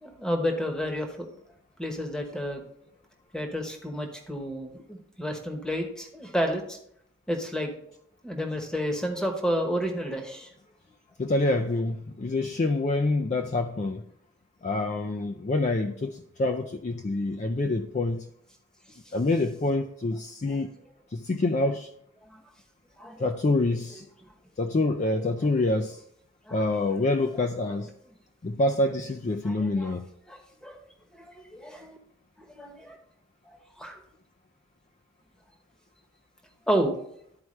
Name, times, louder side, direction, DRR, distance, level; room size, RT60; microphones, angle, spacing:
voice 1, 0.0-1.3 1.8-2.6 3.3-6.8 7.3-7.7 8.2-10.5 18.9-19.0 22.3-22.4 23.0-23.2 25.2-25.3 26.5-26.6 29.4-29.9 30.3-30.8 31.1-32.0 32.5-33.0 33.5-34.0 36.7-36.9, equal, 5° left, 1.0 m, -31 dB
voice 2, 11.2-14.0 14.6-18.3 19.1-20.7 21.1-21.9 23.2-24.1 24.6-26.0 26.5-27.9 28.4-30.1, left 2 dB, 35° left, 0.4 m, -26 dB
12.0 x 4.6 x 3.2 m
head